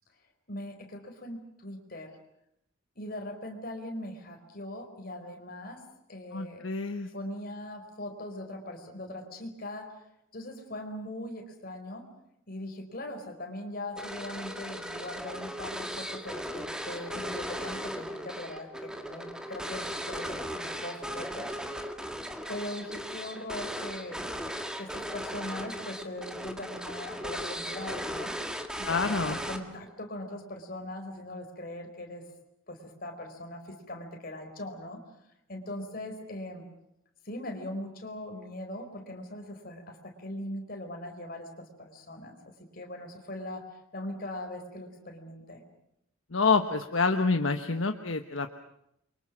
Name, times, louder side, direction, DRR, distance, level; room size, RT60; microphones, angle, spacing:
voice 1, 0.5-2.2 3.0-5.8 6.1-6.6 7.1-10.0 10.3-12.0 12.5-21.6 22.5-24.2 24.8-28.3 28.8-32.2 32.7-35.0 35.5-36.6 37.2-43.6 43.9-45.6, left 1 dB, 45° left, 4 dB, 4.6 m, -40 dB
voice 2, 6.3-7.1 28.8-29.4 46.3-48.5, left 4 dB, 70° left, 6 dB, 1.2 m, -27 dB
sound 1, 14.0-29.9, equal, 5° right, 1.9 m, -37 dB
29.0 x 24.0 x 6.3 m, 0.78 s
head